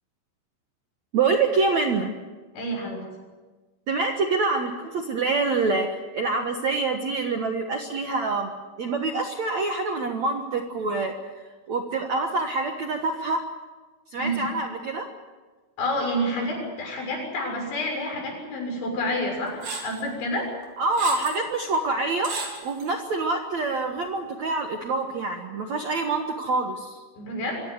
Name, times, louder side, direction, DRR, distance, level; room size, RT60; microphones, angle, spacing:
voice 1, 1.1-2.1 3.9-8.5 8.8-11.1 11.7-13.4 14.1-15.1 20.8-22.3 22.6-27.0, right 3 dB, 75° right, 4 dB, 1.6 m, -26 dB
voice 2, 2.5-3.0 14.2-14.4 15.8-20.5 27.2-27.6, equal, 70° left, 0 dB, 9.2 m, -29 dB
sound 1, 19.6-20.0 20.6-21.4 21.7-21.8 22.2-22.9, right 4 dB, 50° right, 5.4 m, -33 dB
25.5 x 16.5 x 9.5 m, 1.3 s
omnidirectional pair, 5.6 m